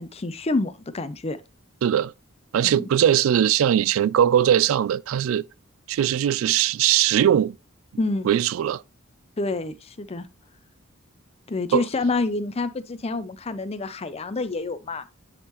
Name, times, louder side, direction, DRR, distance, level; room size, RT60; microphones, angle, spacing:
voice 1, 0.0-1.4 2.6-2.9 8.0-8.3 9.4-10.3 11.5-15.0, left 3 dB, 30° left, 0.5 m, -28 dB
voice 2, 1.8-2.1 2.5-5.5 5.9-7.6 8.2-8.8 11.7-11.8, right 10 dB, 85° right, 0.3 m, -20 dB
9.8 x 3.7 x 2.9 m
head